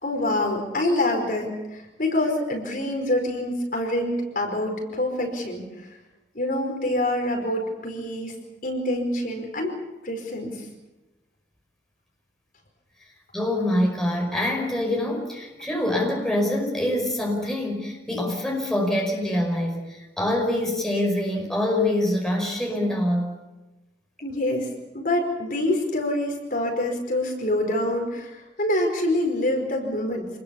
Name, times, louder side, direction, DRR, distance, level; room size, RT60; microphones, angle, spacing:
voice 1, 0.0-5.9 6.3-8.3 8.6-9.8 10.0-10.7 24.2-30.3, left 1 dB, 50° left, 2 dB, 4.9 m, -26 dB
voice 2, 13.3-23.3, left 1 dB, 5° left, -1 dB, 5.2 m, -25 dB
27.5 x 20.5 x 7.1 m, 1.1 s
head